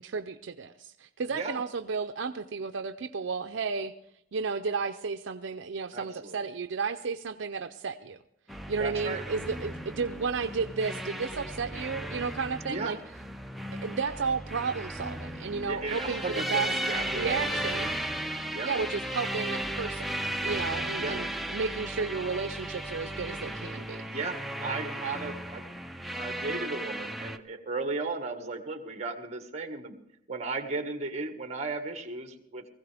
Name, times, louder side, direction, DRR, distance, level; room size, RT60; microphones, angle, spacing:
voice 1, 0.0-3.9 4.3-8.2 8.7-13.0 13.7-16.7 17.1-18.0 18.6-20.2 20.4-24.1, right 5 dB, 65° right, 7 dB, 0.5 m, -33 dB
voice 2, 1.3-1.6 5.9-6.4 8.8-9.2 12.7-13.0 15.7-17.6 18.5-18.7 21.0-21.2 24.1-25.7 26.2-30.0 30.3-32.7, right 3 dB, 35° right, 4 dB, 1.7 m, -35 dB
sound 1, 8.5-27.4, right 1 dB, ahead, 0.5 m, -35 dB
20.0 x 15.5 x 3.5 m, 0.75 s
head